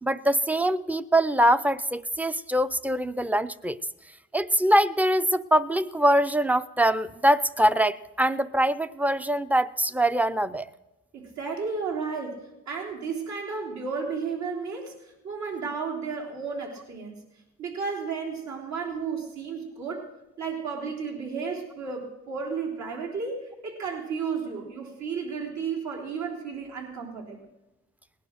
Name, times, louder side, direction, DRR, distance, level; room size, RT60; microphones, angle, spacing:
voice 1, 0.0-3.8 4.3-10.7, right 1 dB, 5° right, 14 dB, 0.6 m, -23 dB
voice 2, 11.1-17.2 17.6-20.1 20.4-27.4, right 5 dB, 65° right, -1 dB, 3.6 m, -33 dB
19.0 x 10.5 x 6.5 m, 1.0 s
cardioid pair, 90°, 30 cm